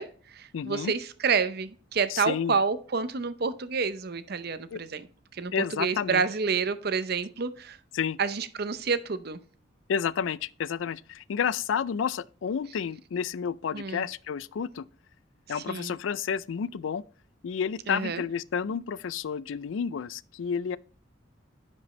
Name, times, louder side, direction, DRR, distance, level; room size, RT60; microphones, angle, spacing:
voice 1, 0.0-5.1 5.3-7.8 8.2-9.4 13.7-14.0 15.5-15.9 17.9-18.2, right 5 dB, 55° right, 0.7 m, -29 dB
voice 2, 0.5-0.9 2.1-2.6 4.7-4.8 5.5-6.2 7.9-8.2 9.9-14.9 15.5-17.0 17.4-20.8, left 7 dB, 80° left, 0.4 m, -30 dB
10.5 x 5.4 x 3.2 m
head